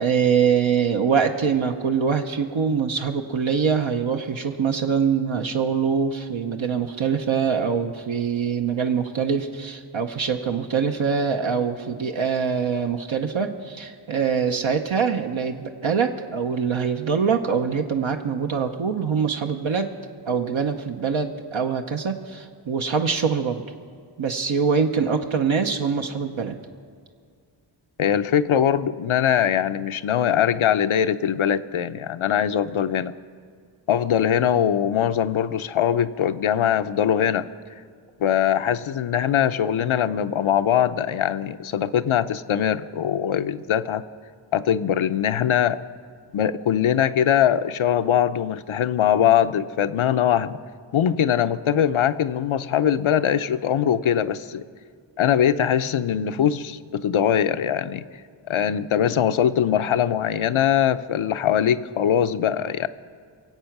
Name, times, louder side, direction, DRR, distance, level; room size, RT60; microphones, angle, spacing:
voice 1, 0.0-19.9 20.3-23.6 24.2-26.6, right 6 dB, 75° right, 4 dB, 0.8 m, -24 dB
voice 2, 28.0-33.1 33.9-37.5 38.2-44.0 44.5-45.8 46.3-50.6 50.9-54.6 55.2-58.0 58.5-62.9, left 9 dB, 85° left, 12 dB, 0.6 m, -22 dB
23.0 x 8.0 x 5.9 m, 2.1 s
wide cardioid pair, 60°, 47 cm